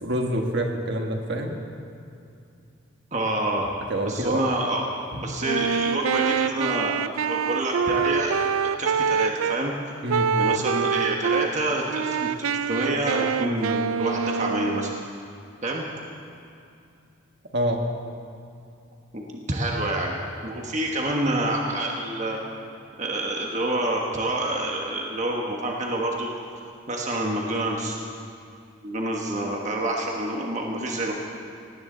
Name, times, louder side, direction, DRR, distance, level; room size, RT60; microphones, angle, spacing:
voice 1, 0.0-1.5 3.9-4.4 5.1-5.2 10.0-10.3 17.5-17.8, right 1 dB, 55° right, 2 dB, 1.5 m, -26 dB
voice 2, 3.1-3.7 4.0-4.8 5.2-8.3 8.8-9.7 10.3-14.9 15.6-15.8 19.1-22.4 23.0-26.3 26.9-28.0 28.8-31.1, right 1 dB, 35° right, -1 dB, 1.3 m, -27 dB
Wind instrument woodwind instrument, 5.4-9.6 10.1-11.5 11.9-15.1, right 6 dB, 85° right, 0.4 m, -25 dB
18.5 x 17.0 x 3.9 m, 2.5 s
head